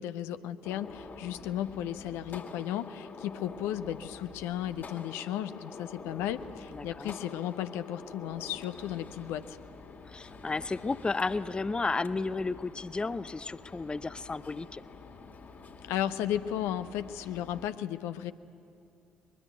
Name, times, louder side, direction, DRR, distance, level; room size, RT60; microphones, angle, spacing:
voice 1, 0.0-9.6 15.8-18.3, left 11 dB, 65° left, 12 dB, 0.6 m, -34 dB
Gunshot gunfire, 0.6-17.7, left 4 dB, 45° left, 2.1 m, -47 dB
voice 2, 6.7-7.2 10.0-14.8, left 3 dB, 20° left, 17 dB, 0.5 m, -33 dB
23.0 x 21.5 x 9.2 m, 2.5 s
figure-of-eight pair, 45°, 5 cm